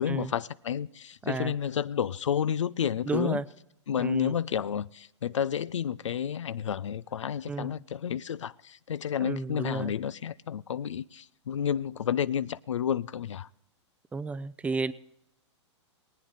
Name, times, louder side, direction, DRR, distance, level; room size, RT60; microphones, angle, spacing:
voice 1, 0.0-3.4 3.9-13.5, left 8 dB, 80° left, 0.5 m, -30 dB
voice 2, 1.2-1.5 3.1-3.4 4.0-4.4 7.5-7.7 9.2-9.9 14.1-14.9, right 4 dB, 10° right, 0.5 m, -32 dB
22.5 x 8.7 x 4.0 m
hypercardioid pair, 115°, 16 cm